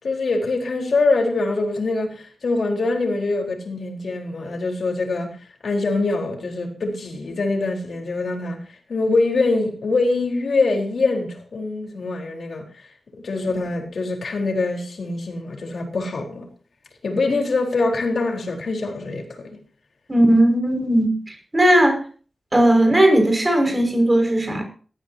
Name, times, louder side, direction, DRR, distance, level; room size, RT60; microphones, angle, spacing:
voice 1, 0.0-8.6 8.9-12.6 13.1-16.5 17.0-19.6, left 3 dB, 70° left, 4.2 m, -24 dB
voice 2, 20.1-22.0 22.5-24.6, right 1 dB, 20° right, 5.8 m, -17 dB
18.5 x 14.0 x 2.8 m
wide cardioid pair, 115°, 0 cm